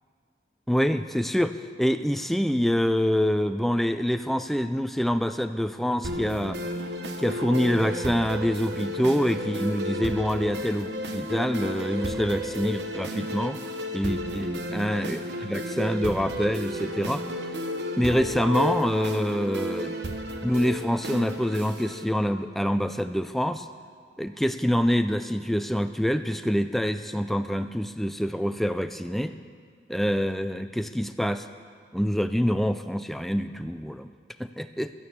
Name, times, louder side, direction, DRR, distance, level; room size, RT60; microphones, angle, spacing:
voice 1, 0.7-6.6 7.2-13.6 13.9-17.2 18.0-20.0 20.4-23.7 24.2-29.4 29.9-31.5 31.9-34.1 34.4-34.9, equal, ahead, 9 dB, 0.3 m, -26 dB
sound 1, 6.0-22.0, equal, 70° right, 1.1 m, -32 dB
13.0 x 9.3 x 8.5 m, 2.2 s
head